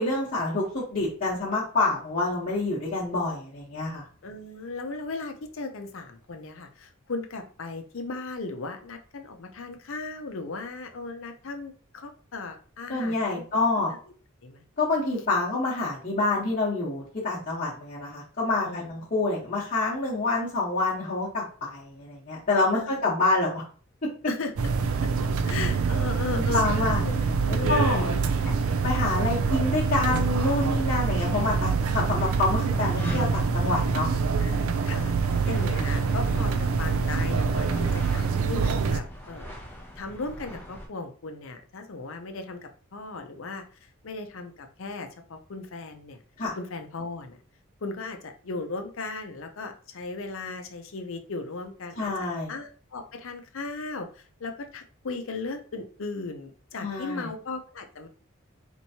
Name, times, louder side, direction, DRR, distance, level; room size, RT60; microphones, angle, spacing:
voice 1, 0.0-4.1 12.9-13.9 14.8-23.6 26.3-28.1 28.8-34.1 46.4-46.5 52.0-52.5 56.8-57.3, left 2 dB, 40° left, -9 dB, 1.1 m, -27 dB
voice 2, 4.2-13.4 14.4-14.6 18.6-18.9 22.7-23.0 24.3-24.5 25.0-25.1 25.4-27.1 27.4-28.3 34.4-35.1 35.4-39.5 40.0-43.6 44.0-46.2 46.6-47.4 47.8-52.1 52.5-58.1, left 3 dB, 70° left, 5 dB, 0.6 m, -36 dB
sound 1, 24.6-39.0, right 5 dB, 80° right, 0.4 m, -25 dB
sound 2, 27.0-40.9, equal, 10° left, 0.7 m, -41 dB
4.4 x 3.0 x 2.7 m, 0.40 s
head